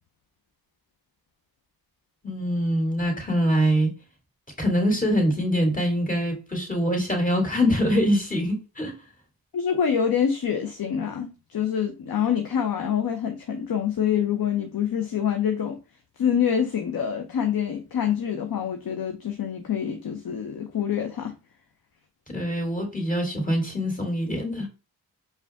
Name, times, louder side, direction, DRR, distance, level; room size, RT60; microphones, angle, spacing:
voice 1, 2.2-3.9 4.6-8.9 22.3-24.7, equal, 20° left, 2.5 m, -24 dB
voice 2, 9.5-15.8 16.2-21.3, left 8 dB, 60° left, 0.8 m, -26 dB
4.9 x 2.5 x 3.5 m
supercardioid pair, 40°, 41 cm